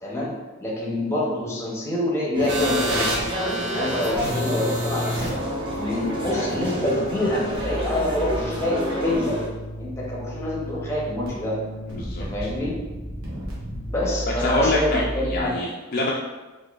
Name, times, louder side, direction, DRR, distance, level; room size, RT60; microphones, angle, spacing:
voice 1, 0.0-3.1 3.5-5.3 5.8-9.4 9.8-11.6 12.2-12.7 13.9-15.5, left 1 dB, 10° left, -4 dB, 0.6 m, -26 dB
sound 1, 2.3-9.5, equal, 25° right, 0.5 m, -30 dB
sound 2, 2.5-15.4, equal, 75° right, 0.9 m, -31 dB
voice 2, 11.9-12.3 14.3-16.1, left 2 dB, 45° left, -3 dB, 0.3 m, -25 dB
4.1 x 2.5 x 2.4 m, 1.2 s
head